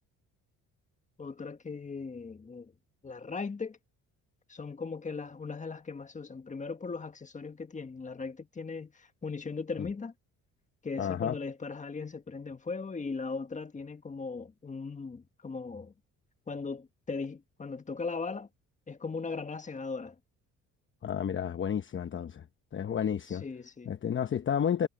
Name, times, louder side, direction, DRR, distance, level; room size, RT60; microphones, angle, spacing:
voice 1, 1.2-2.7 3.0-3.8 4.5-10.1 10.8-15.9 16.5-18.5 18.9-20.1 23.3-23.9, left 4 dB, 25° left, 1.6 m, -38 dB
voice 2, 11.0-11.4 21.0-22.4 22.7-23.4 23.9-24.9, left 8 dB, 40° left, 1.0 m, -31 dB
cardioid pair, 90°, 31 cm